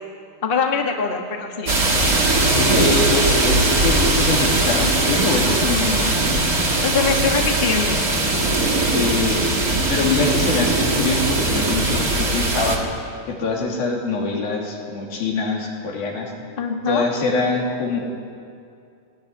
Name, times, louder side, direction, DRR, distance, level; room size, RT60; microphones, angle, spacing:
voice 1, 0.4-1.7 6.8-8.0 16.6-17.1, left 5 dB, 30° left, 2 dB, 1.0 m, -23 dB
sound 1, 1.7-12.8, right 2 dB, 30° right, 2.2 m, -20 dB
voice 2, 2.5-6.1 8.9-9.4 9.9-12.8 13.3-16.3 16.9-18.0, left 3 dB, 75° left, -1 dB, 4.8 m, -23 dB
19.0 x 16.0 x 9.9 m, 2.4 s
omnidirectional pair, 4.2 m